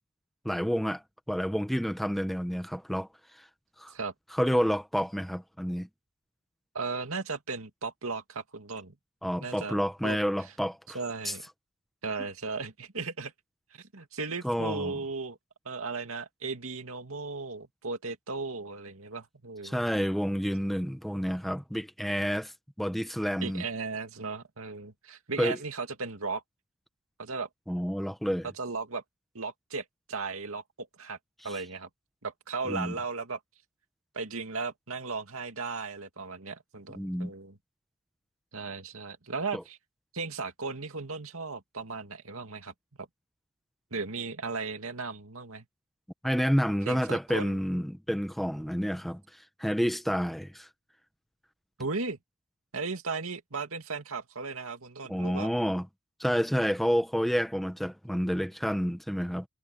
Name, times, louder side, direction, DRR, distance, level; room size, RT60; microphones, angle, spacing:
voice 1, 0.4-1.0 1.3-3.1 3.4-3.5 3.8-3.9 4.3-5.9 9.2-11.0 11.2-11.3 14.4-14.9 19.6-22.5 22.8-23.6 25.4-25.6 27.7-28.5 31.5-31.6 32.7-32.9 36.9-37.3 39.5-39.6 46.2-49.2 49.6-50.7 55.1-55.9 56.2-59.5, equal, ahead, 1.0 m, -29 dB
voice 2, 6.7-8.9 9.4-10.2 10.9-11.4 12.0-13.3 13.7-15.4 15.6-19.8 23.4-26.4 27.2-27.5 28.6-29.0 29.3-31.2 31.4-31.9 32.2-33.4 34.1-37.6 38.5-39.8 40.1-42.7 43.0-43.1 43.9-45.7 46.9-47.6 51.8-52.2 52.7-55.5, right 4 dB, 80° right, 2.4 m, -36 dB
head